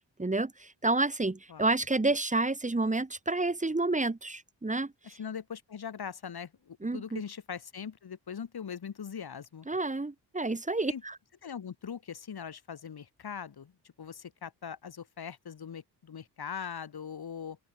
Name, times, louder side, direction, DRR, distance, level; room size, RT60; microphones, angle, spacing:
voice 1, 0.2-4.9 6.8-7.2 9.7-11.2, right 2 dB, 20° right, 1.8 m, -29 dB
voice 2, 5.0-9.7 10.9-11.0 11.4-13.7 14.0-17.6, left 7 dB, 60° left, 3.5 m, -41 dB
open air
supercardioid pair, 45°, 41 cm